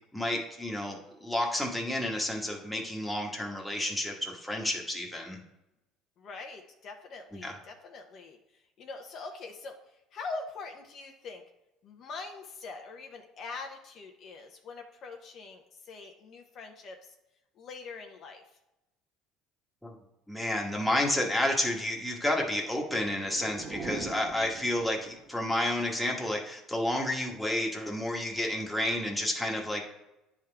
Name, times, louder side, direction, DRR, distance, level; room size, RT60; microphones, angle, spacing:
voice 1, 0.1-5.4 7.3-7.5 19.8-19.9 20.3-29.8, left 1 dB, ahead, -1 dB, 1.3 m, -30 dB
voice 2, 6.2-9.8 10.1-11.4 11.8-17.2 17.5-18.4, left 4 dB, 50° left, 3 dB, 0.8 m, -43 dB
sound 1, 22.8-25.4, right 4 dB, 30° right, 0.9 m, -42 dB
10.0 x 3.6 x 3.4 m, 0.94 s
cardioid pair, 115°, 0 cm